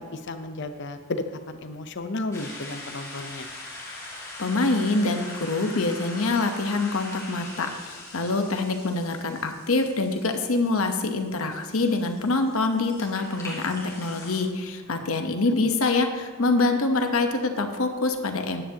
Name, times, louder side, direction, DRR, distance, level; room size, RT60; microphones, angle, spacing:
voice 1, 0.1-3.5 15.6-15.7, left 2 dB, 55° left, 8 dB, 0.7 m, -33 dB
sound 1, 2.3-14.4, left 2 dB, 15° left, 3.0 m, -42 dB
voice 2, 4.4-18.6, left 3 dB, 75° left, 5 dB, 1.0 m, -25 dB
14.0 x 10.0 x 2.9 m, 1.4 s
head